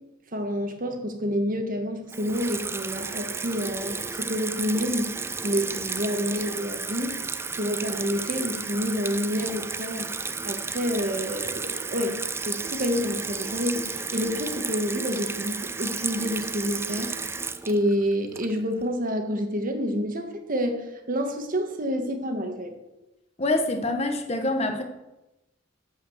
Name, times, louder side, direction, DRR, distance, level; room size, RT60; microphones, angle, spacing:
voice 1, 0.3-5.1 5.4-7.2 7.5-10.1 10.4-12.2 12.5-17.2 17.7-22.7, equal, 45° right, 5 dB, 1.6 m, -28 dB
Water tap faucet / Sink (filling or washing), 2.1-18.8, right 4 dB, 15° right, 0.4 m, -32 dB
voice 2, 23.4-24.8, left 2 dB, 35° left, 6 dB, 1.3 m, -25 dB
12.0 x 5.6 x 7.9 m, 0.96 s
head